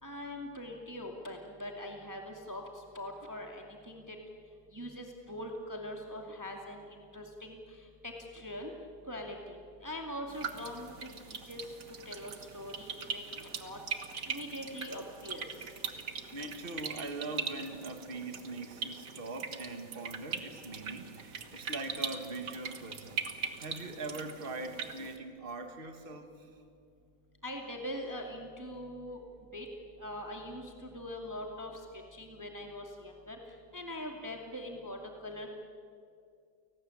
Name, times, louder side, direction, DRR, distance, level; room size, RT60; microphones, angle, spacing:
voice 1, 0.0-4.2 4.7-8.7 9.1-11.1 11.5-13.8 14.3-15.5 27.4-29.2 29.5-29.7 30.0-33.4 33.7-35.0 35.2-35.5, left 1 dB, 10° right, 2 dB, 2.2 m, -42 dB
sound 1, 10.3-25.2, right 5 dB, 50° right, 1.8 m, -41 dB
voice 2, 16.3-23.2 23.6-26.5, right 2 dB, 30° right, 6 dB, 2.1 m, -42 dB
29.5 x 19.0 x 9.0 m, 2.4 s
omnidirectional pair, 1.9 m